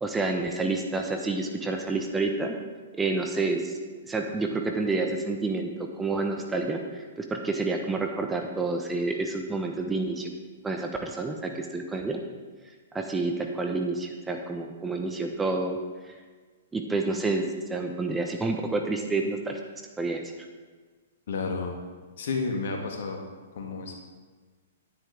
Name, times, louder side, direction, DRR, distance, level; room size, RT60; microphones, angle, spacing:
voice 1, 0.0-2.6 3.0-3.7 4.1-5.7 6.0-10.4 10.6-12.2 12.9-15.8 16.7-17.4 17.7-19.6 20.0-20.2, right 3 dB, 10° right, 3 dB, 0.9 m, -29 dB
voice 2, 21.3-21.8 22.2-23.3 23.5-24.0, left 4 dB, 60° left, 2 dB, 1.7 m, -31 dB
10.0 x 9.7 x 3.5 m, 1.4 s
figure-of-eight pair, 115°, 0 cm